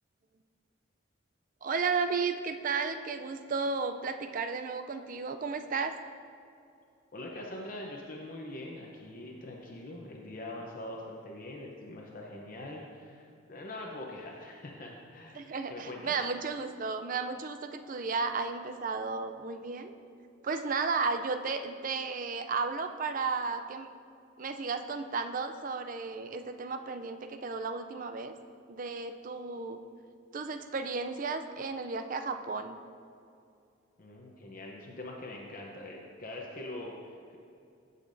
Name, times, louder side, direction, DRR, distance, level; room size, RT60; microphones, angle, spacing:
voice 1, 1.6-6.0 15.3-19.9 20.4-23.9 24.4-28.3 28.7-29.8 30.3-32.8, right 4 dB, 45° right, 8 dB, 0.5 m, -33 dB
voice 2, 7.1-16.1 34.0-37.4, left 1 dB, 45° left, -1 dB, 0.8 m, -43 dB
15.5 x 6.7 x 2.6 m, 2.5 s
head